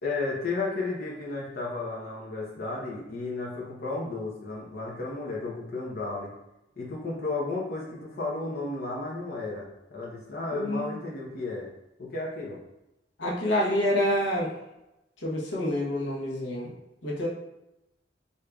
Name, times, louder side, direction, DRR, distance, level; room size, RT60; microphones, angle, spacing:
voice 1, 0.0-6.3 6.8-11.7 12.0-12.6, left 3 dB, 55° left, -4 dB, 0.7 m, -33 dB
voice 2, 10.5-11.0 13.2-14.6 15.2-16.7 17.0-17.3, left 1 dB, 90° left, -4 dB, 0.9 m, -27 dB
4.9 x 2.7 x 2.3 m, 0.92 s
head